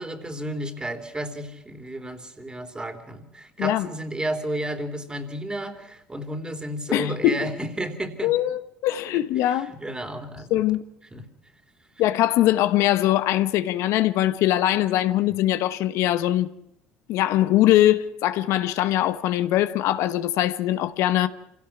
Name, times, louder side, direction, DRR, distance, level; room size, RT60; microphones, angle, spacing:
voice 1, 0.0-8.3 9.1-10.6 11.1-11.2, right 1 dB, 15° right, 3.5 m, -32 dB
voice 2, 6.9-7.5 8.2-9.7 10.5-10.8 12.0-16.5 17.1-21.3, left 14 dB, 70° left, 1.0 m, -22 dB
27.0 x 17.0 x 6.0 m
hypercardioid pair, 75°, 5 cm